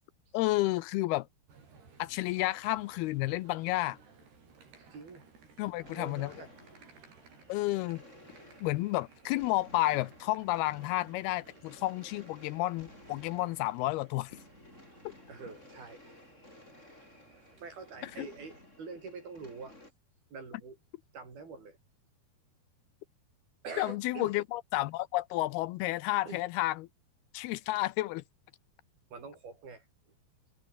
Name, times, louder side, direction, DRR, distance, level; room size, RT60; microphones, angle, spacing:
voice 1, 0.3-1.3 2.0-4.0 5.6-6.3 7.5-8.0 8.6-14.4 18.2-18.3 23.8-26.9 27.3-28.2, left 18 dB, 85° left, 2.6 m, -31 dB
sound 1, 1.5-18.4, right 5 dB, 85° right, 8.4 m, -59 dB
voice 2, 4.9-5.2 5.9-6.5 6.8-7.2 15.3-16.2 17.6-19.8 20.3-20.8 21.1-21.8 23.6-24.3 26.3-26.4 29.1-29.9, right 4 dB, 70° right, 9.2 m, -45 dB
sound 2, 5.7-19.9, left 1 dB, 15° left, 7.2 m, -56 dB
omnidirectional pair, 4.5 m